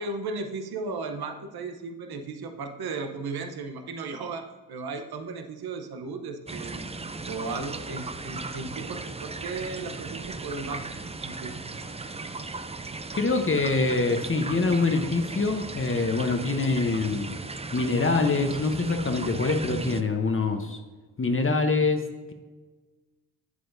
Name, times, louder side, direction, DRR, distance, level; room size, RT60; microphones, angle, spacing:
voice 1, 0.0-6.8 7.3-10.9 11.2-11.6, right 3 dB, 65° right, 6 dB, 1.0 m, -35 dB
sound 1, 6.5-20.0, right 3 dB, 15° right, 0.5 m, -37 dB
voice 2, 13.1-17.4 17.7-20.8 21.2-22.3, left 3 dB, 30° left, 5 dB, 0.9 m, -25 dB
8.0 x 7.6 x 2.7 m, 1.3 s
supercardioid pair, 50°, 41 cm